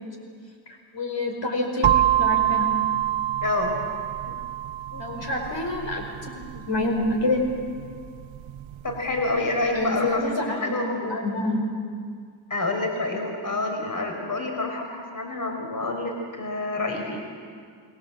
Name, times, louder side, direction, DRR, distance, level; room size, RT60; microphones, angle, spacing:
voice 1, 0.9-2.7 5.0-7.4 9.7-10.8 11.1-11.6, left 2 dB, 65° left, 2 dB, 5.2 m, -27 dB
sound 1, 1.8-9.7, right 12 dB, 85° right, 0.7 m, -27 dB
voice 2, 3.4-3.8 4.2-4.4 4.9-5.3 8.8-11.2 12.5-17.2, left 2 dB, 40° left, 2 dB, 4.6 m, -28 dB
28.5 x 21.0 x 7.7 m, 2.1 s
cardioid pair, 60°, 46 cm